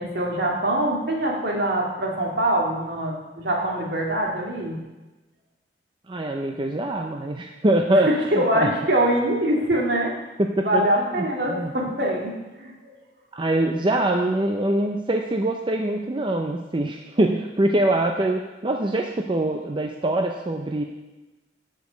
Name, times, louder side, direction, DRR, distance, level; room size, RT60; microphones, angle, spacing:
voice 1, 0.0-4.8 8.1-10.1 10.6-12.9, right 1 dB, 65° right, -1 dB, 2.1 m, -24 dB
voice 2, 6.1-8.7 10.4-11.7 13.3-20.8, right 1 dB, 30° right, 2 dB, 0.5 m, -24 dB
13.0 x 5.2 x 5.1 m, 1.1 s
head